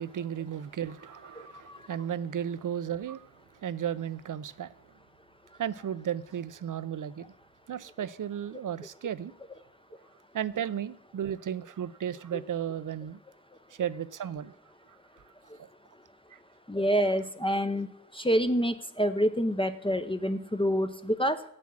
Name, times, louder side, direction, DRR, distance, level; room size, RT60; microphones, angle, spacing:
voice 1, 0.0-3.3 3.6-4.7 5.6-7.3 7.7-9.3 10.3-13.2 13.8-14.5 15.6-15.7 16.3-16.4, right 9 dB, 55° right, 0.6 m, -34 dB
voice 2, 1.3-1.8 12.3-12.4 15.5-15.6 16.7-17.9 18.1-21.4, equal, 15° left, 0.6 m, -27 dB
7.6 x 7.4 x 7.4 m
cardioid pair, 45°, 37 cm